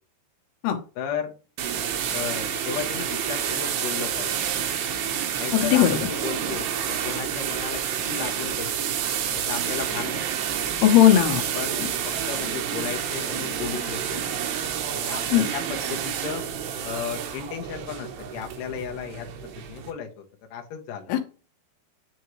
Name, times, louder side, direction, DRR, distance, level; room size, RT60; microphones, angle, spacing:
voice 1, 1.0-1.3 2.1-4.3 5.4-8.7 9.3-10.2 11.6-11.8 12.3-14.3 14.9-16.4 16.8-20.2 20.5-21.2, left 8 dB, 65° left, 3 dB, 2.3 m, -34 dB
sound 1, 1.6-19.9, right 8 dB, 85° right, 3.2 m, -29 dB
voice 2, 5.5-6.0 10.8-11.4 15.3-15.4 21.1-21.2, left 11 dB, 85° left, 5 dB, 2.9 m, -17 dB
9.2 x 3.7 x 3.1 m, 0.36 s
omnidirectional pair, 4.6 m